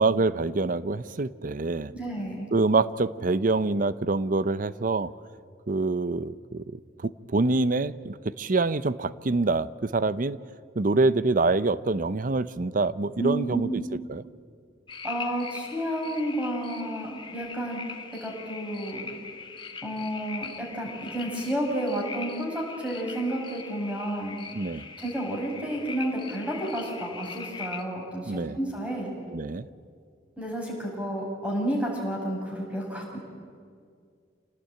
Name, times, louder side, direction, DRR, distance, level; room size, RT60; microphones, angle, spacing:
voice 1, 0.0-1.9 2.5-5.1 5.7-10.4 10.8-13.8 14.1-14.2 24.5-24.9 28.3-28.6 29.3-29.7, right 3 dB, 45° right, 17 dB, 0.6 m, -26 dB
voice 2, 1.9-2.5 13.2-13.8 15.0-19.1 19.8-24.4 25.0-29.1 30.4-33.2, right 1 dB, 5° right, -1 dB, 6.0 m, -31 dB
sound 1, 14.9-27.8, left 5 dB, 25° left, 1.9 m, -41 dB
27.0 x 18.0 x 9.0 m, 2.2 s
head